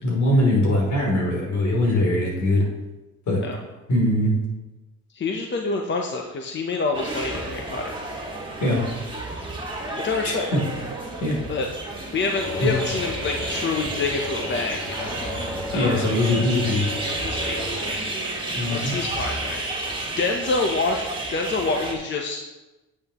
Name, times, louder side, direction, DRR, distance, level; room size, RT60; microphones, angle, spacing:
voice 1, 0.0-2.7 3.3-3.4 3.9-4.3 8.6-8.8 10.2-10.6 11.2-11.4 12.6-12.7 15.7-16.9 18.5-18.9, left 1 dB, 70° left, -2 dB, 3.3 m, -21 dB
voice 2, 5.1-7.9 10.0-10.5 11.5-11.7 12.1-15.2 15.7-16.1 17.2-18.0 18.7-21.0 21.3-22.4, left 3 dB, 40° left, 2 dB, 0.9 m, -27 dB
sound 1, 6.9-21.9, right 2 dB, 15° right, 2.0 m, -31 dB
sound 2, 12.4-18.0, left 2 dB, 5° left, 2.4 m, -34 dB
9.3 x 8.6 x 3.0 m, 1.1 s
cardioid pair, 90°, 30 cm